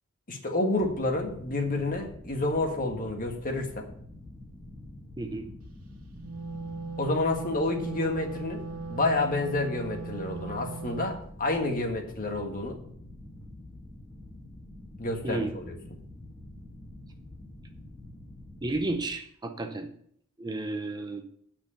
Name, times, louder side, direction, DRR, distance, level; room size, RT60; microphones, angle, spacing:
voice 1, 0.3-3.9 7.0-12.8 15.0-15.7, left 2 dB, 40° left, 3 dB, 1.7 m, -29 dB
sound 1, 0.7-19.0, left 1 dB, 15° left, 1.8 m, -47 dB
voice 2, 5.2-5.5 15.2-15.5 18.6-19.9 20.4-21.4, right 2 dB, 20° right, 6 dB, 0.7 m, -32 dB
Wind instrument woodwind instrument, 6.1-11.2, right 4 dB, 70° right, 1.1 m, -38 dB
9.4 x 6.0 x 6.9 m, 0.67 s
head